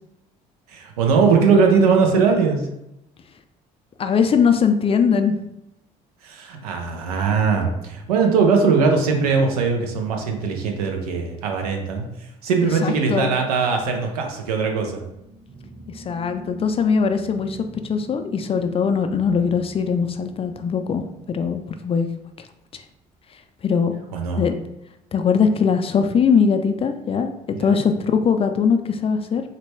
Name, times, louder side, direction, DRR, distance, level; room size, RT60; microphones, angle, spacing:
voice 1, 0.7-2.6 6.2-12.1 12.4-15.0 24.1-24.5 27.5-27.8, right 5 dB, 90° right, 3 dB, 0.6 m, -20 dB
voice 2, 4.0-5.3 12.8-13.3 15.9-22.1 23.6-24.0 24.4-24.5 25.1-27.3 27.6-29.4, left 6 dB, 30° left, 7 dB, 0.4 m, -20 dB
sound 1, 14.5-22.2, equal, 30° right, 0.9 m, -43 dB
3.9 x 2.2 x 3.2 m, 0.85 s
hypercardioid pair, 65°, 19 cm